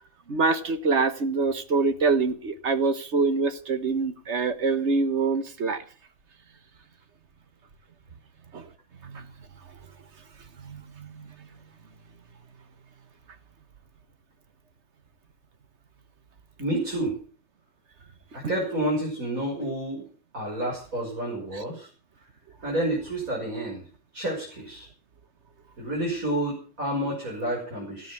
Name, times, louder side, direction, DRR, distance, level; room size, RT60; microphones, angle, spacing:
voice 1, 0.3-5.8 8.5-8.6 9.0-9.3 10.6-11.3, right 4 dB, 55° right, 1.7 m, -25 dB
voice 2, 16.6-17.2 18.3-20.0 20.3-21.9 22.6-23.8 24.1-24.9 25.8-28.1, right 1 dB, 75° right, 6.5 m, -29 dB
17.0 x 9.6 x 7.1 m
omnidirectional pair, 1.5 m